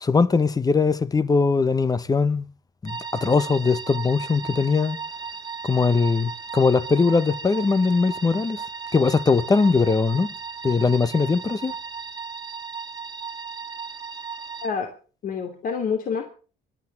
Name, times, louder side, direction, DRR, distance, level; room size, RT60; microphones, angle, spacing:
voice 1, 0.0-2.5 2.8-5.0 5.6-8.6 8.9-10.3 10.6-11.7, left 4 dB, 20° left, 1.0 m, -21 dB
sound 1, 2.9-14.7, right 5 dB, 25° right, 1.9 m, -36 dB
voice 2, 14.6-14.9 15.2-16.3, left 6 dB, 55° left, 2.7 m, -27 dB
24.0 x 9.7 x 6.0 m
cardioid pair, 110°, 17 cm